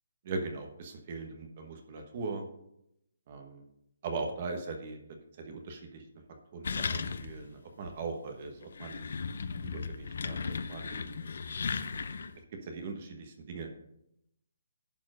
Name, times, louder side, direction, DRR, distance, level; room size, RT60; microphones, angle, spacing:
voice 1, 0.2-2.4 3.3-3.6 4.0-5.0 5.4-6.0 6.5-9.0 9.6-10.4 10.7-11.2 12.7-13.7, right 3 dB, 30° right, 4 dB, 1.1 m, -39 dB
sound 1, 6.6-7.5 7.9-8.0 8.6-12.4, left 5 dB, 55° left, 0.6 m, -36 dB
11.0 x 4.5 x 6.1 m, 0.78 s
hypercardioid pair, 175°, 0 cm